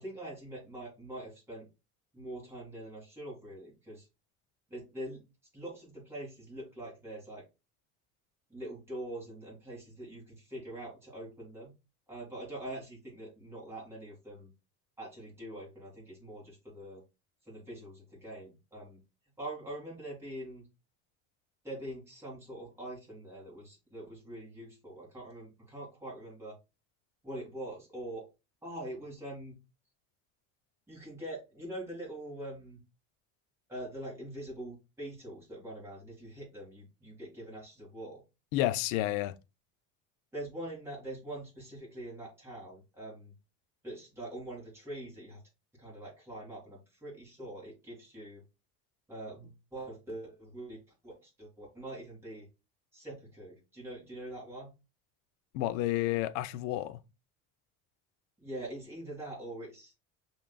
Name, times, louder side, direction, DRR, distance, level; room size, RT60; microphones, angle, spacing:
voice 1, 0.0-1.7 2.1-4.1 4.7-5.2 5.5-7.4 8.5-11.7 12.1-14.5 15.0-17.0 17.5-19.0 19.4-20.6 21.6-26.6 27.2-28.2 28.6-29.5 30.9-32.8 33.7-38.2 40.3-43.3 43.8-45.4 45.7-48.4 49.1-50.8 51.0-52.5 52.9-54.7 58.4-59.9, right 1 dB, 10° right, 2.2 m, -44 dB
voice 2, 38.5-39.4 55.5-57.0, left 15 dB, 90° left, 0.5 m, -30 dB
5.9 x 3.7 x 2.2 m
cardioid pair, 175°, 32 cm